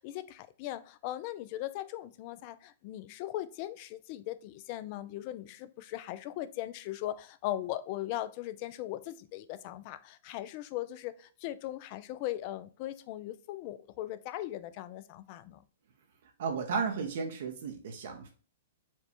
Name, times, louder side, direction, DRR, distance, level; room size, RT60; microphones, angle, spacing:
voice 1, 0.0-15.6, left 14 dB, 40° left, 0.4 m, -39 dB
voice 2, 16.4-18.3, right 5 dB, 65° right, 0.9 m, -34 dB
4.5 x 2.3 x 4.2 m
hypercardioid pair, 135°, 0 cm